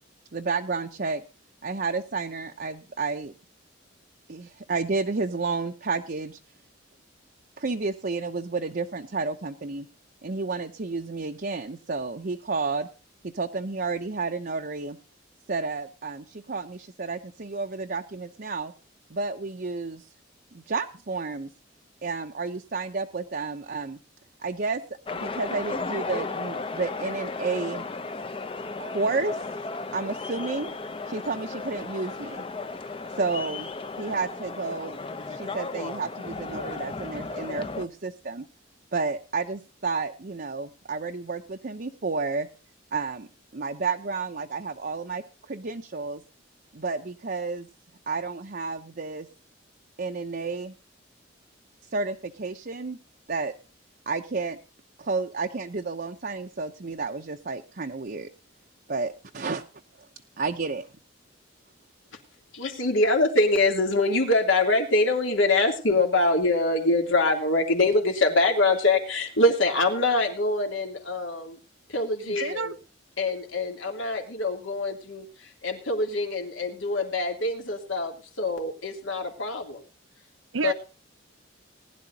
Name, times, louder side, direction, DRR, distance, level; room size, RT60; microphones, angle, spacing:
voice 1, 0.3-1.2 1.6-3.3 4.3-6.4 7.6-9.9 10.2-12.9 13.2-15.0 15.5-18.7 19.1-20.1 20.5-21.5 22.0-24.0 24.4-24.8 25.2-27.9 28.8-29.4 29.9-30.7 31.1-32.5 33.1-33.7 34.0-35.0 35.3-38.5 38.9-42.5 42.9-46.2 46.7-47.7 48.1-49.3 50.0-50.7 51.9-53.0 53.3-53.5 54.1-54.6 55.0-58.3 58.9-59.6 60.4-60.9, right 4 dB, 45° right, 4 dB, 0.7 m, -31 dB
sound 1, 25.1-37.8, left 3 dB, 25° left, 0.7 m, -35 dB
voice 2, 62.5-71.6 71.9-72.7 73.2-79.8 80.6-80.7, left 2 dB, 85° left, 2 dB, 3.0 m, -24 dB
voice 3, 72.3-72.7 80.5-80.7, right 3 dB, 80° right, 11 dB, 0.8 m, -29 dB
19.5 x 11.0 x 2.8 m, 0.33 s
head